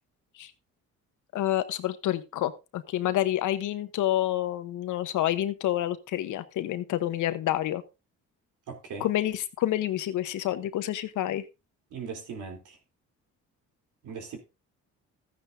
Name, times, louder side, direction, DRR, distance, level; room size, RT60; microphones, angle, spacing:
voice 1, 1.3-7.8 9.0-11.4, left 13 dB, 80° left, 1.1 m, -28 dB
voice 2, 8.7-9.1 11.9-12.8 14.0-14.4, right 5 dB, 80° right, 3.4 m, -39 dB
14.0 x 9.6 x 2.7 m
cardioid pair, 90°, 30 cm